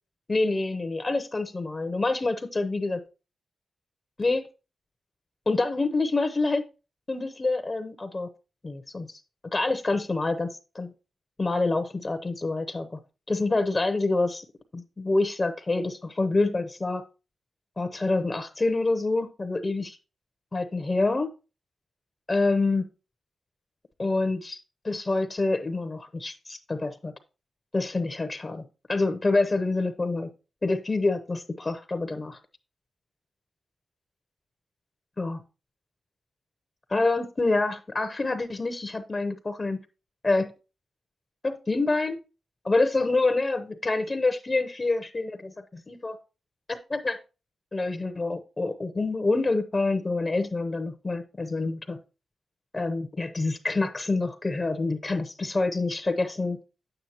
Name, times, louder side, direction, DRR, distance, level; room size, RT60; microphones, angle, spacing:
voice 1, 0.3-3.0 4.2-4.4 5.5-6.6 7.1-8.3 8.6-9.2 9.5-10.9 11.4-13.0 13.3-14.4 14.7-17.0 17.8-20.0 20.5-21.3 22.3-22.9 24.0-27.1 27.7-30.3 30.6-32.4 35.2-35.4 36.9-39.8 40.2-40.5 41.4-42.2 42.6-46.2 46.7-47.2 47.7-52.0 52.7-56.6, left 3 dB, 35° left, 10 dB, 0.8 m, -27 dB
8.9 x 7.9 x 2.9 m, 0.31 s
cardioid pair, 65°, 0 cm